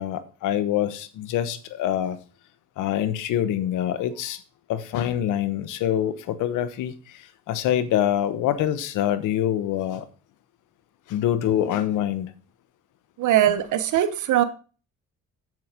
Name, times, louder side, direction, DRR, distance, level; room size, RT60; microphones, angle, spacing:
voice 1, 0.0-2.2 2.8-4.4 4.7-10.1 11.1-12.3, left 11 dB, 90° left, 1.2 m, -25 dB
voice 2, 13.2-14.4, right 11 dB, 80° right, 1.3 m, -21 dB
7.8 x 7.8 x 5.1 m
cardioid pair, 90°, 30 cm